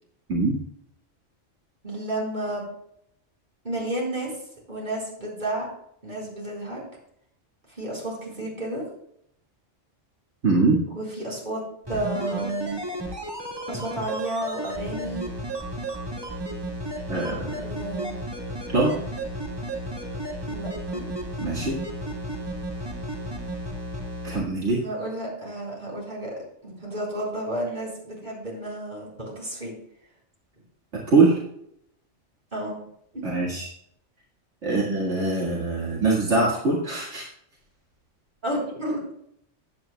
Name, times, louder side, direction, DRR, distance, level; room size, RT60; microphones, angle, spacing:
voice 1, 1.8-2.7 3.6-4.3 4.7-5.7 6.0-6.8 7.7-8.8 10.9-11.6 11.9-12.8 13.7-15.3 17.5-18.3 20.5-21.0 24.8-29.7 32.5-32.8 33.1-33.3 34.7-34.8 38.4-39.1, right 1 dB, 40° right, -4 dB, 4.4 m, -31 dB
voice 2, 10.4-10.8 17.1-17.7 18.7-19.0 21.4-21.8 24.2-24.8 30.9-31.4 33.2-33.7 34.6-37.3, right 3 dB, 70° right, -5 dB, 2.2 m, -23 dB
sound 1, 11.8-24.4 24.7-24.8, right 1 dB, 20° right, 1.8 m, -33 dB
15.5 x 9.5 x 2.3 m, 0.72 s
omnidirectional pair, 1.3 m